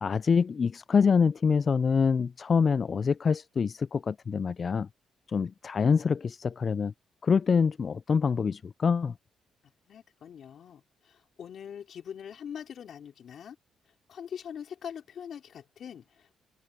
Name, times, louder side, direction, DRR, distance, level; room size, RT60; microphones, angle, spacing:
voice 1, 0.0-4.9 5.3-6.9 7.2-9.1, left 5 dB, 45° left, 0.3 m, -25 dB
voice 2, 9.9-13.6 14.1-16.4, left 8 dB, 65° left, 3.2 m, -43 dB
open air
supercardioid pair, 65°, 0 cm